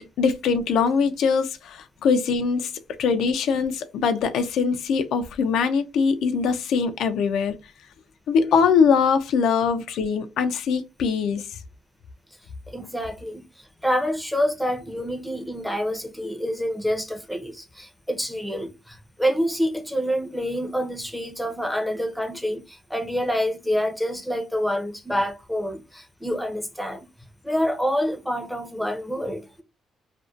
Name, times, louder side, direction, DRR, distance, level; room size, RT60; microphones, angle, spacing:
voice 1, 0.0-2.7 3.0-7.5 8.3-11.5, left 5 dB, 80° left, 0.3 m, -22 dB
voice 2, 12.7-27.1 27.4-29.6, equal, ahead, 0.5 m, -27 dB
2.5 x 2.1 x 2.3 m
cardioid pair, 90°, 0 cm